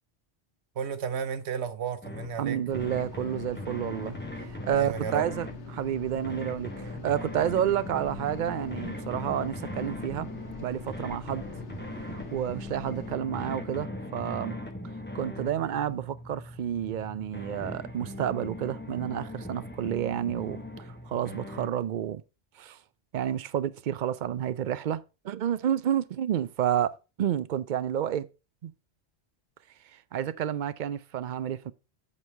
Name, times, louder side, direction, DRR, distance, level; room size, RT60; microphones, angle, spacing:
voice 1, 0.8-2.6 4.8-5.2, right 7 dB, 75° right, 1.1 m, -33 dB
sound 1, 2.0-21.7, left 1 dB, 10° left, 1.1 m, -40 dB
voice 2, 2.4-10.3 10.6-11.5 12.3-14.6 15.1-22.2 22.6-22.8 23.1-28.3 28.6-28.7 29.9-31.7, right 10 dB, 55° right, 0.6 m, -30 dB
sound 2, 2.7-13.2, left 5 dB, 80° left, 1.5 m, -45 dB
8.0 x 5.4 x 4.6 m
omnidirectional pair, 1.1 m